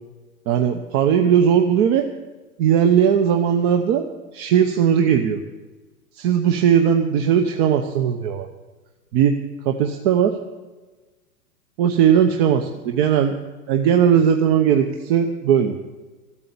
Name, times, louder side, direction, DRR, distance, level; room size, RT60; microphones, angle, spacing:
voice 1, 0.5-2.1 2.6-4.0 4.3-5.4 6.2-8.5 9.1-9.3 9.6-10.3 11.8-13.4 13.7-15.7, right 8 dB, 40° right, 5 dB, 1.1 m, -18 dB
14.0 x 8.7 x 8.6 m, 1.2 s
hypercardioid pair, 135°, 46 cm